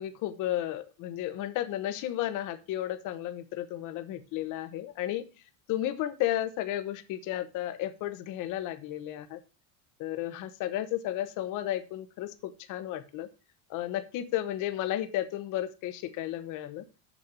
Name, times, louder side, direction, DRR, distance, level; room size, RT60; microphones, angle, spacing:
voice 1, 0.0-5.2 5.7-9.4 10.0-13.3 13.7-16.8, left 13 dB, 45° left, 10 dB, 1.0 m, -33 dB
7.0 x 6.4 x 6.8 m, 0.32 s
cardioid pair, 155°, 42 cm